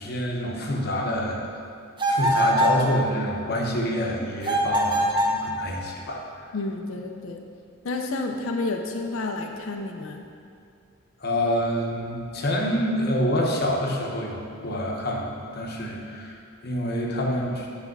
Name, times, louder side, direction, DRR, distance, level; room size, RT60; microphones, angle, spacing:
voice 1, 0.0-1.5 2.1-6.5 11.2-17.7, equal, 45° left, -1 dB, 0.9 m, -27 dB
sound 1, 2.0-2.8 4.4-5.4, right 1 dB, 20° right, 0.6 m, -22 dB
voice 2, 6.5-7.4 7.8-10.2, left 2 dB, 70° left, 3 dB, 0.5 m, -30 dB
7.9 x 3.4 x 6.0 m, 2.4 s
head